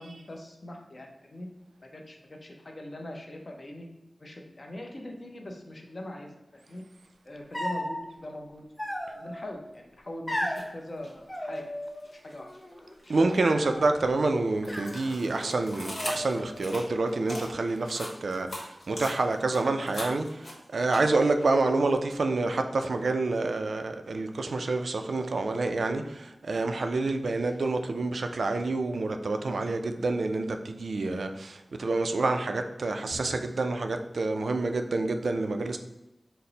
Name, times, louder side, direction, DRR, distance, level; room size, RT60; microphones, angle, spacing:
voice 1, 0.0-1.5 1.8-3.9 4.2-6.8 7.2-8.7 9.2-11.7 12.1-12.5 13.1-13.3, left 1 dB, 45° left, 2 dB, 0.6 m, -42 dB
sound 1, 7.5-8.0 8.8-9.5 10.3-10.6 11.3-12.1 12.4-12.9 13.4-13.9 14.6-15.5 15.9-16.6, equal, 10° left, 0.9 m, -35 dB
sound 2, 10.4-10.6 11.0-12.6 13.0-21.4, left 1 dB, 70° left, 0.9 m, -41 dB
voice 2, 13.1-35.8, right 3 dB, 90° right, 6 dB, 0.3 m, -28 dB
4.2 x 2.0 x 3.8 m, 0.96 s
wide cardioid pair, 85°, 0 cm